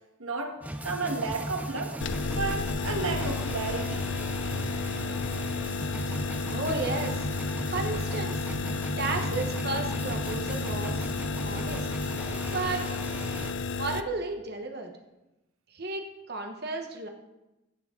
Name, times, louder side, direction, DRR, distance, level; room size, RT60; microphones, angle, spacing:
voice 1, 0.2-1.9 2.3-4.0, right 3 dB, 90° right, 3 dB, 1.6 m, -32 dB
sound 1, 0.6-13.5, right 1 dB, 5° right, 0.6 m, -37 dB
sound 2, 2.0-14.0, left 4 dB, 60° left, 0.5 m, -32 dB
voice 2, 6.5-7.2 7.7-8.4 8.7-11.1 11.4-11.9 12.5-12.8 13.8-14.9 15.7-17.1, right 3 dB, 50° right, 3 dB, 1.2 m, -33 dB
16.0 x 7.7 x 3.9 m, 0.98 s
head